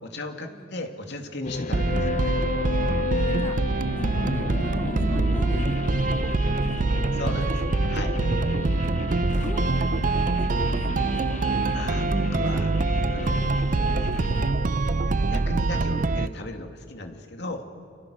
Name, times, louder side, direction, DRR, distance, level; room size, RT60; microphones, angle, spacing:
voice 1, 0.0-2.2 7.1-8.1 11.7-12.7 13.1-14.8 15.2-17.7, left 2 dB, 65° left, 4 dB, 2.7 m, -36 dB
sound 1, 1.4-14.5, left 2 dB, 40° left, 0.8 m, -31 dB
sound 2, 1.7-16.3, right 3 dB, 45° right, 0.6 m, -25 dB
voice 2, 3.1-3.6 4.0-7.2 8.4-11.6, equal, 15° left, 0 dB, 3.0 m, -41 dB
30.0 x 29.5 x 6.6 m, 2.3 s
head